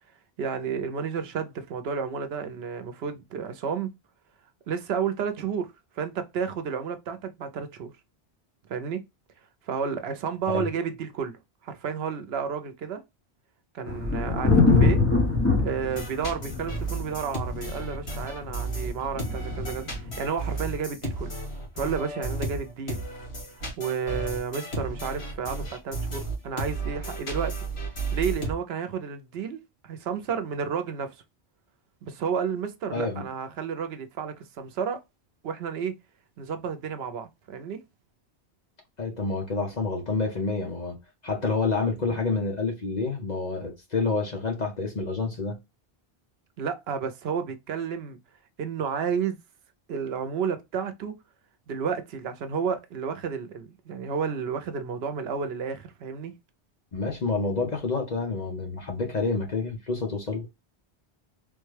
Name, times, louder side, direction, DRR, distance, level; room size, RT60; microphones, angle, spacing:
voice 1, 0.4-3.9 4.7-7.9 8.7-9.0 9.7-11.4 11.6-13.0 13.7-15.0 15.6-21.3 21.8-23.0 23.8-27.7 28.1-31.1 32.0-35.0 35.4-36.0 36.4-37.8 42.0-42.2 46.6-48.2 48.6-49.4 49.9-51.2 51.7-56.3, right 6 dB, 75° right, 0.8 m, -31 dB
sound 1, 13.8-20.3, left 3 dB, 15° left, 0.8 m, -24 dB
sound 2, 15.9-28.5, right 2 dB, 75° left, 1.7 m, -33 dB
voice 2, 32.9-33.2 39.0-41.0 41.2-45.6 56.9-60.5, left 3 dB, 45° left, 0.8 m, -28 dB
3.5 x 2.2 x 3.2 m
omnidirectional pair, 1.1 m